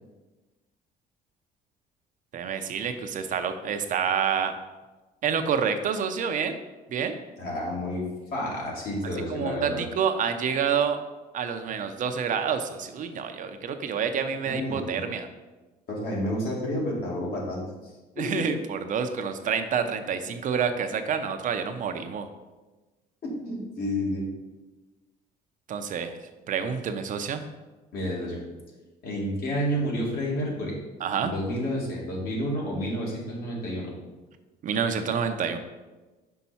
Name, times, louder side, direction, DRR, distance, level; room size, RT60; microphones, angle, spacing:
voice 1, 2.3-4.5 5.2-6.6 6.9-7.2 9.3-11.0 11.3-15.3 18.2-22.3 25.7-26.1 26.5-27.4 31.0-31.3 34.6-35.6, right 7 dB, 50° right, 7 dB, 0.6 m, -28 dB
voice 2, 7.4-8.0 8.3-9.9 14.4-15.0 15.9-18.5 23.2-24.2 27.9-28.4 29.0-30.8 31.2-34.0, equal, 65° left, -3 dB, 2.2 m, -30 dB
5.7 x 5.3 x 4.1 m, 1.2 s
cardioid pair, 110°, 17 cm